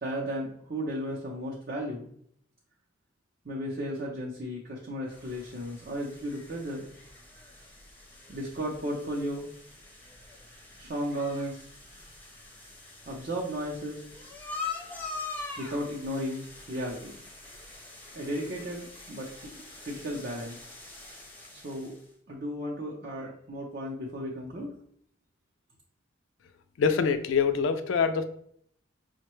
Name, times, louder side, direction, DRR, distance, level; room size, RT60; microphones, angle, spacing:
voice 1, 0.0-2.1 3.4-6.9 8.3-9.5 10.8-11.6 13.1-14.0 15.6-17.1 18.1-20.6 21.5-21.9 22.3-24.7, equal, 45° right, -3 dB, 0.6 m, -34 dB
sound 1, 5.1-22.1, left 3 dB, 10° left, 0.5 m, -44 dB
voice 2, 26.8-28.2, left 6 dB, 65° left, 8 dB, 0.3 m, -25 dB
5.3 x 2.1 x 3.0 m, 0.65 s
head